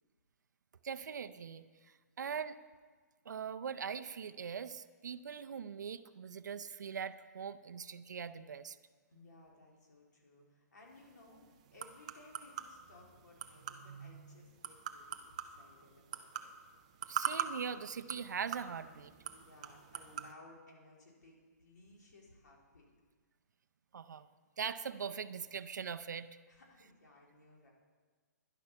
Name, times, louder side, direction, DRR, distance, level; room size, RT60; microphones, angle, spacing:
voice 1, 0.8-2.6 3.3-8.8 17.1-19.1 23.9-24.3 24.6-26.3, right 7 dB, 85° right, 11 dB, 0.6 m, -41 dB
voice 2, 9.1-16.5 19.3-22.9 26.5-27.7, left 2 dB, 85° left, -2 dB, 3.8 m, -60 dB
sound 1, 10.9-20.3, right 9 dB, 25° right, 0.5 m, -44 dB
11.0 x 11.0 x 5.9 m, 1.5 s
hypercardioid pair, 180°, 9 cm